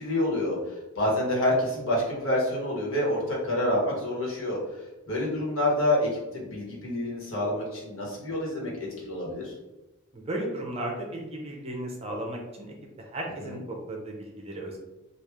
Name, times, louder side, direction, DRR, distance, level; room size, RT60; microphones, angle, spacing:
voice 1, 0.0-4.6 5.1-9.5 13.4-13.6, left 1 dB, 65° left, -4 dB, 1.3 m, -28 dB
voice 2, 10.1-14.8, right 1 dB, 30° right, 0 dB, 0.6 m, -35 dB
3.2 x 2.4 x 3.5 m, 1.0 s
head